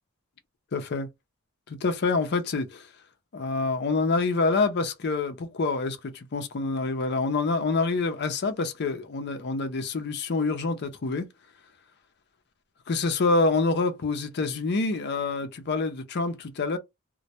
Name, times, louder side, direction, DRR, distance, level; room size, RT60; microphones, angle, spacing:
voice 1, 0.7-1.1 1.7-2.9 3.3-11.3 12.9-16.8, left 3 dB, 50° left, 0.5 m, -26 dB
2.2 x 2.1 x 2.7 m
head